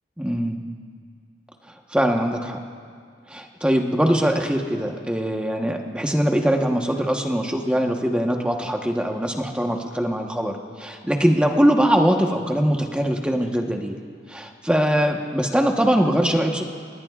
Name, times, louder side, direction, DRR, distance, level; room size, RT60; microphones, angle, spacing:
voice 1, 0.2-0.6 1.9-2.6 3.3-14.0 14.3-16.6, equal, 5° right, 2 dB, 1.1 m, -22 dB
30.0 x 19.0 x 2.4 m, 2.1 s
head